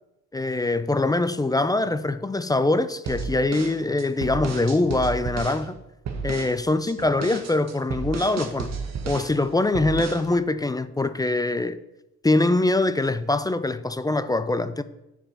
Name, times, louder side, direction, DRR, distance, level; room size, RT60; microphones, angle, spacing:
voice 1, 0.3-5.8 6.2-8.7 9.1-11.8 12.2-14.8, left 2 dB, 15° left, 0.4 m, -23 dB
sound 1, 3.1-5.6 6.1-6.6 6.9-9.4 9.7-10.3, right 5 dB, 60° right, 1.4 m, -32 dB
10.0 x 5.1 x 5.4 m
cardioid pair, 90°, 30 cm